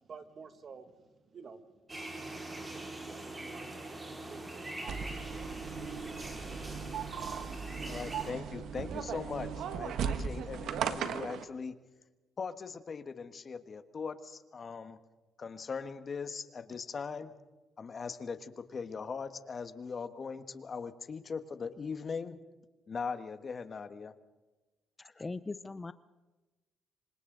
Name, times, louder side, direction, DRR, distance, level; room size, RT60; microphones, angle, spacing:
voice 1, 0.1-0.9 1.3-1.6 2.7-4.0 4.3-5.5, right 5 dB, 50° right, 8 dB, 2.1 m, -50 dB
sound 1, 1.9-8.3, right 2 dB, 25° right, 5.0 m, -43 dB
sound 2, 4.9-11.4, right 7 dB, 75° right, 1.4 m, -37 dB
voice 2, 7.8-11.7 12.4-15.0 15.4-17.3 17.8-22.4 22.9-24.1, left 5 dB, 45° left, 10 dB, 1.5 m, -40 dB
voice 3, 25.0-25.9, left 3 dB, 25° left, 13 dB, 0.6 m, -40 dB
27.5 x 25.0 x 4.0 m, 1.1 s
cardioid pair, 90°, 0 cm